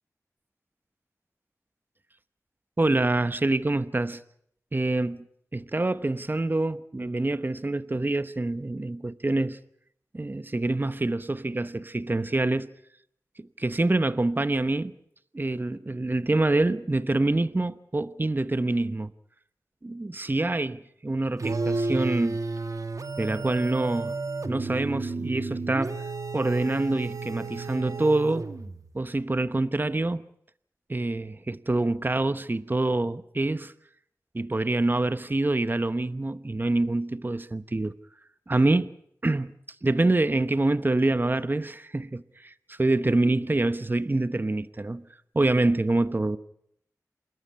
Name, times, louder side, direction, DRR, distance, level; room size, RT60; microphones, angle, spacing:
voice 1, 2.8-4.2 4.7-5.2 5.5-9.6 10.1-12.7 13.4-14.9 15.3-19.1 19.8-22.4 23.2-24.1 24.5-26.0 26.3-28.5 28.9-30.3 30.9-33.7 34.3-37.9 38.5-38.9 39.2-39.5 39.8-42.5 42.8-45.0 45.3-46.4, right 2 dB, 35° right, 1.0 m, -26 dB
sound 1, 21.4-28.9, right 3 dB, 65° right, 1.7 m, -32 dB
28.0 x 12.5 x 10.0 m
wide cardioid pair, 55°, 6 cm